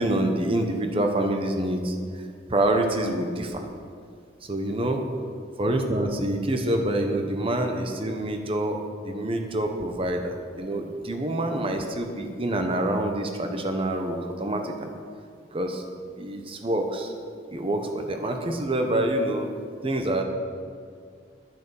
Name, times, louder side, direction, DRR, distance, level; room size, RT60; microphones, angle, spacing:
voice 1, 0.0-1.9 2.5-3.6 4.5-5.0 5.6-8.8 9.0-14.9 15.5-15.8 16.1-17.1 17.5-19.5 19.8-20.2, right 1 dB, 30° right, 4 dB, 1.1 m, -26 dB
11.5 x 10.5 x 7.0 m, 2.2 s
head